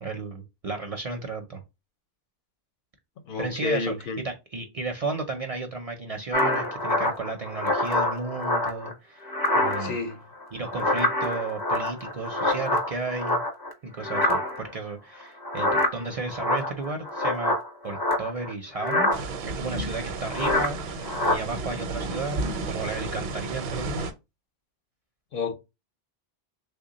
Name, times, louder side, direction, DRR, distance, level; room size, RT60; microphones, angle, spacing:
voice 1, 0.0-1.6 3.4-9.2 9.5-10.0 10.5-13.4 13.8-17.5 17.8-19.1 19.4-20.8 21.2-24.1, right 3 dB, 45° right, 0.5 m, -33 dB
voice 2, 3.3-4.2 9.8-10.2 25.3-25.5, left 4 dB, 65° left, 0.7 m, -30 dB
sound 1, 6.3-8.9 9.3-10.1 10.4-13.7 14.0-14.7 15.4-18.5 18.8-19.2 20.3-20.7 21.0-21.4, left 1 dB, 25° left, 0.6 m, -26 dB
sound 2, 19.1-24.1, right 3 dB, 75° right, 0.8 m, -33 dB
3.3 x 2.2 x 3.8 m
omnidirectional pair, 1.0 m